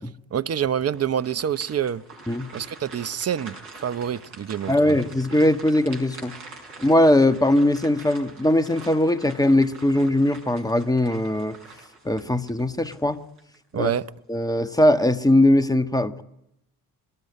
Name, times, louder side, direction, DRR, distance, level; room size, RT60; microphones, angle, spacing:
voice 1, 0.3-2.0 2.5-5.0 13.7-14.1, right 9 dB, 35° right, 0.9 m, -27 dB
sound 1, 0.9-13.6 14.0-14.2 14.8-15.3, right 3 dB, 75° right, 5.8 m, -45 dB
voice 2, 4.7-6.3 6.8-11.6 12.0-13.2 13.8-13.9 14.3-16.2, left 1 dB, 10° left, 1.5 m, -20 dB
23.5 x 19.5 x 9.8 m
hypercardioid pair, 50°, 43 cm